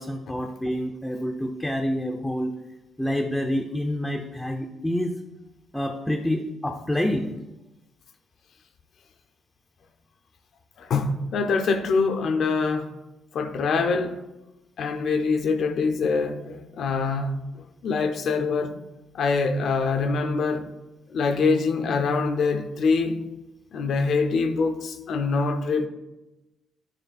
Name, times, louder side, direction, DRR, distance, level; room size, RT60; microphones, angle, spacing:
voice 1, 0.0-2.5 3.0-5.2 5.7-7.4, equal, 5° left, 0.5 m, -27 dB
voice 2, 10.8-13.0 13.3-14.3 14.8-18.8 19.1-20.7 21.1-23.2 23.7-25.9, left 4 dB, 65° left, 0.5 m, -24 dB
9.1 x 3.2 x 4.2 m
cardioid pair, 90°, 0 cm